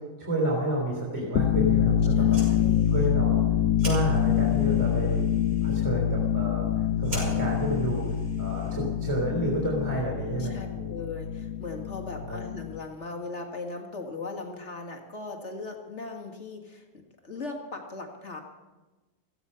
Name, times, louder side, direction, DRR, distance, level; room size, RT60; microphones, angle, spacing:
voice 1, 0.2-2.6 2.9-3.6 3.8-5.2 5.6-10.9 12.2-12.4, right 1 dB, 20° right, -2 dB, 3.6 m, -30 dB
sound 1, 1.2-12.8, left 9 dB, 85° left, 1.3 m, -26 dB
voice 2, 2.1-2.9 10.4-18.4, left 3 dB, 50° left, 2 dB, 2.1 m, -39 dB
Fire, 2.1-9.0, right 1 dB, 70° right, 7.5 m, -43 dB
16.0 x 15.0 x 5.6 m, 1.2 s
omnidirectional pair, 1.5 m